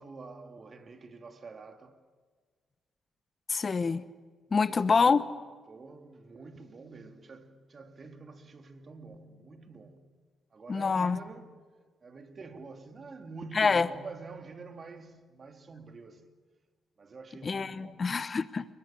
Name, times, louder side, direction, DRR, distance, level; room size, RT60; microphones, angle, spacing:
voice 1, 0.0-2.0 4.5-5.2 5.7-10.1 10.5-11.6 12.0-16.3 17.0-18.1, right 4 dB, 45° right, 2.5 m, -47 dB
voice 2, 3.5-4.0 4.5-5.2 10.7-11.2 13.5-13.9 17.4-18.7, left 5 dB, 40° left, 1.1 m, -26 dB
30.0 x 21.0 x 8.9 m
supercardioid pair, 65°, 0 cm